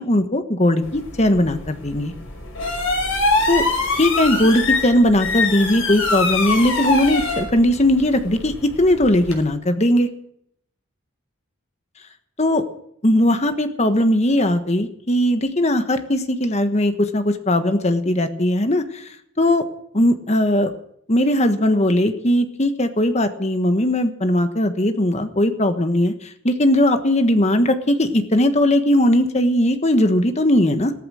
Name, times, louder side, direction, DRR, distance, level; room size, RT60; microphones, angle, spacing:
voice 1, 0.0-2.1 3.5-3.6 4.0-10.1 12.4-12.6 13.0-19.1 19.4-19.6 19.9-20.7 21.1-30.9, left 1 dB, 30° left, 9 dB, 1.4 m, -19 dB
sound 1, 0.8-9.4, left 3 dB, 65° left, 5.4 m, -24 dB
16.0 x 14.0 x 6.4 m, 0.68 s
head